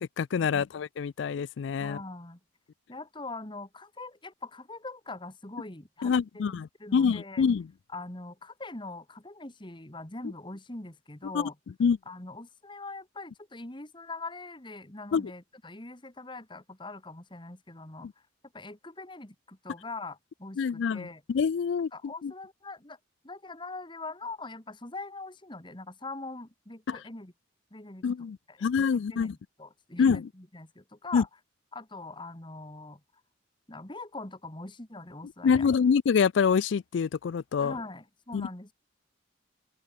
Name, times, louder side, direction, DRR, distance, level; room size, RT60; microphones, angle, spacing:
voice 1, 0.0-2.0 6.0-7.7 11.3-11.5 11.8-12.0 15.1-15.3 18.0-18.1 20.6-21.9 22.2-22.3 26.9-27.0 28.0-29.4 30.0-30.3 31.1-31.2 35.4-37.7 38.3-38.5, left 6 dB, 65° left, 0.3 m, -26 dB
voice 2, 1.8-2.4 2.9-7.4 7.9-11.6 12.1-18.1 18.5-21.2 21.9-23.0 23.2-27.3 27.7-28.0 28.5-31.3 31.7-33.0 33.7-35.7 37.6-38.7, left 2 dB, 25° left, 2.0 m, -42 dB
open air
head